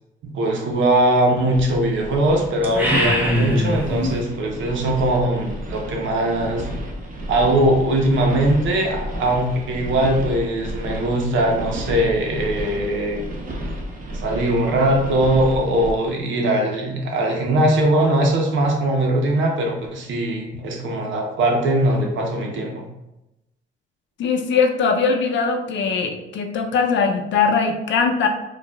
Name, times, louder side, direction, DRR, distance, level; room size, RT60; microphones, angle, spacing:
voice 1, 0.2-6.7 7.3-13.2 14.2-22.9, right 1 dB, 75° right, 1 dB, 0.9 m, -20 dB
sound 1, 1.5-15.9, equal, 45° right, 0.8 m, -32 dB
sound 2, 2.6-4.2, equal, 10° right, 0.8 m, -21 dB
voice 2, 24.2-28.3, left 5 dB, 70° left, 4 dB, 0.6 m, -20 dB
4.7 x 2.4 x 2.3 m, 0.94 s
cardioid pair, 90°, 20 cm